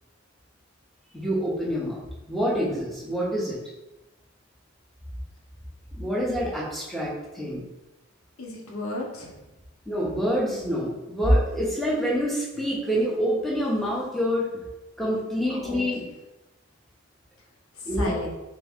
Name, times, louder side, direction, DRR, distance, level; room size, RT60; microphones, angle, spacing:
voice 1, 1.1-2.0 2.3-3.6 5.9-7.6 9.9-14.5 15.0-16.0 17.9-18.2, equal, ahead, -6 dB, 0.7 m, -26 dB
voice 2, 8.4-9.4 15.5-15.8 17.7-18.3, left 2 dB, 80° left, -1 dB, 0.7 m, -35 dB
3.5 x 2.9 x 3.5 m, 1.0 s
head